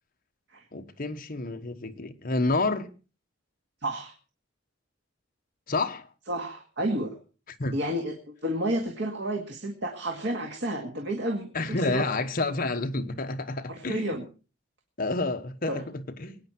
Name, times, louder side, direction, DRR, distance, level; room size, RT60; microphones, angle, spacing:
voice 1, 0.7-2.9 5.7-6.1 7.6-7.7 11.5-14.2 15.0-16.4, left 2 dB, 45° left, 1.2 m, -29 dB
voice 2, 3.8-4.1 6.3-7.1 7.7-8.2 8.4-12.1 13.7-14.3 15.7-15.8, right 1 dB, 60° right, 2.1 m, -31 dB
22.5 x 9.4 x 4.4 m
head